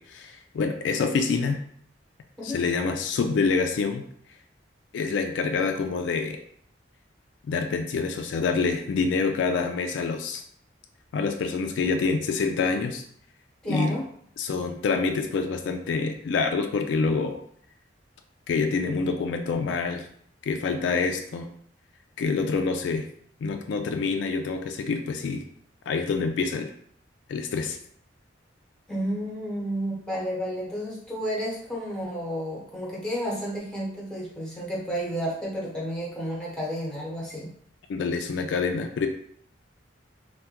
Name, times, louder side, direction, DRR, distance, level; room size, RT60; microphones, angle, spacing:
voice 1, 0.0-1.6 2.4-4.1 4.9-6.4 7.5-10.4 11.1-13.0 13.7-14.0 14.4-17.4 18.5-20.1 20.4-21.5 22.2-23.1 23.4-25.4 25.9-26.7 27.3-27.8 37.9-39.1, left 4 dB, 70° left, 6 dB, 0.3 m, -26 dB
voice 2, 13.6-14.0 28.9-37.5, equal, 5° left, -5 dB, 0.9 m, -31 dB
3.4 x 2.2 x 2.8 m, 0.65 s
head